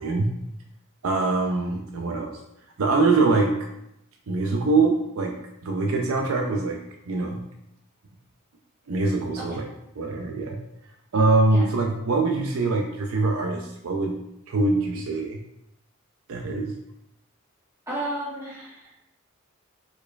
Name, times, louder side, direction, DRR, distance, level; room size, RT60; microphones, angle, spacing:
voice 1, 1.0-2.3 2.8-3.7 4.3-5.4 5.6-6.8 7.1-7.4 8.9-9.6 10.0-10.6 11.1-14.2 14.5-15.4 16.3-16.7, right 3 dB, 70° right, 2 dB, 0.5 m, -23 dB
voice 2, 17.9-19.0, right 1 dB, 15° right, -9 dB, 1.7 m, -33 dB
4.6 x 4.4 x 2.3 m, 0.82 s
head